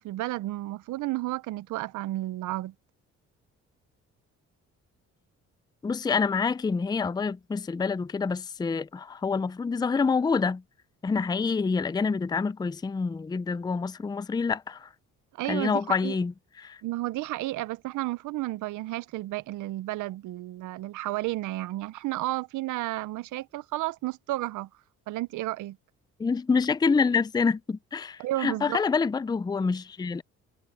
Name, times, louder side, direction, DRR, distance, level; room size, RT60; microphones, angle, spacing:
voice 1, 0.0-2.7 15.3-16.2 16.8-24.7 25.1-25.8 28.2-28.8, right 17 dB, 80° right, 0.6 m, -32 dB
voice 2, 5.8-10.6 11.0-14.9 15.5-16.8 26.2-30.2, left 5 dB, 15° left, 0.4 m, -27 dB
cardioid pair, 90°, 30 cm